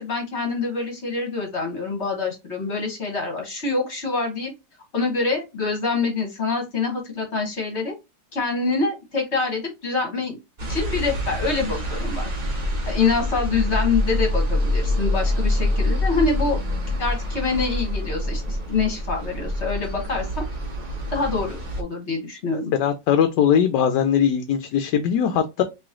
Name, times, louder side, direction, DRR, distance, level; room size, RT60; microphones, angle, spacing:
voice 1, 0.0-4.5 4.9-7.9 8.3-10.4 10.7-12.3 12.9-16.6 16.9-20.4 21.1-22.7, left 4 dB, 45° left, 1.3 m, -25 dB
sound 1, 10.6-21.8, left 1 dB, 35° right, 0.9 m, -26 dB
voice 2, 22.7-25.6, left 8 dB, 75° left, 1.1 m, -20 dB
3.1 x 3.1 x 3.6 m
omnidirectional pair, 1.9 m